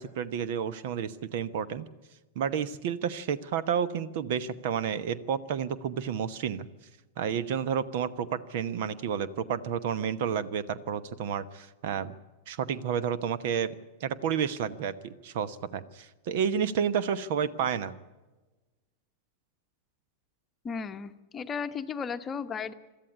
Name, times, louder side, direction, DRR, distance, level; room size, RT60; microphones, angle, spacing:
voice 1, 0.0-1.9 2.4-6.7 7.2-12.1 12.5-13.7 14.0-17.9, right 7 dB, 50° right, 16 dB, 0.9 m, -30 dB
voice 2, 20.6-22.7, left 6 dB, 20° left, 9 dB, 1.0 m, -35 dB
23.0 x 13.5 x 10.0 m, 1.2 s
figure-of-eight pair, 90°, 0 cm